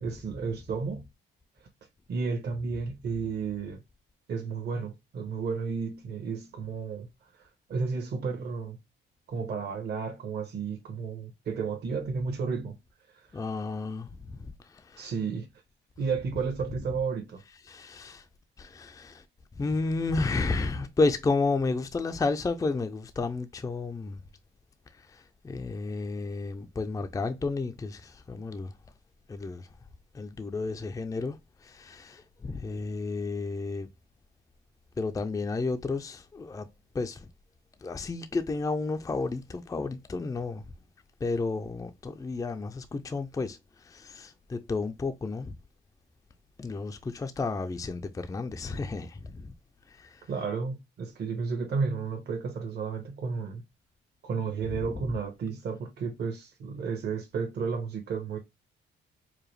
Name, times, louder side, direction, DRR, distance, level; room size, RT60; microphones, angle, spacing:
voice 1, 0.0-1.0 2.1-3.8 4.3-7.1 7.4-8.8 9.3-12.8 13.2-13.3 15.0-15.5 16.0-17.4 50.3-53.6 54.2-58.4, right 5 dB, 55° right, 1.2 m, -32 dB
voice 2, 13.3-15.1 17.7-18.3 18.6-19.3 19.6-24.2 24.9-28.7 29.3-29.7 30.1-33.9 35.0-36.7 36.9-37.3 37.8-40.6 41.2-45.6 46.6-49.5 49.9-50.3 54.7-55.1, left 3 dB, 15° left, 0.4 m, -32 dB
4.8 x 2.3 x 3.1 m
cardioid pair, 90°, 20 cm